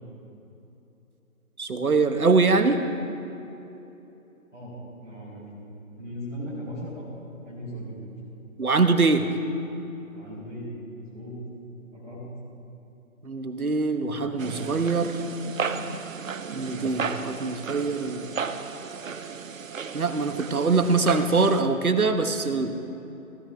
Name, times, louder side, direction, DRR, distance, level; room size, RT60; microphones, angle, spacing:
voice 1, 1.6-2.8 8.6-9.3 13.2-15.2 16.5-18.3 19.9-22.7, right 4 dB, 90° right, 8 dB, 1.2 m, -23 dB
voice 2, 5.0-5.4 5.9-7.1 7.4-8.1 10.1-10.7 10.9-11.3 11.9-12.2, equal, ahead, -17 dB, 0.7 m, -38 dB
sound 1, 14.4-21.6, right 6 dB, 65° right, 0.8 m, -34 dB
16.0 x 12.5 x 3.5 m, 3.0 s
figure-of-eight pair, 155°, 42 cm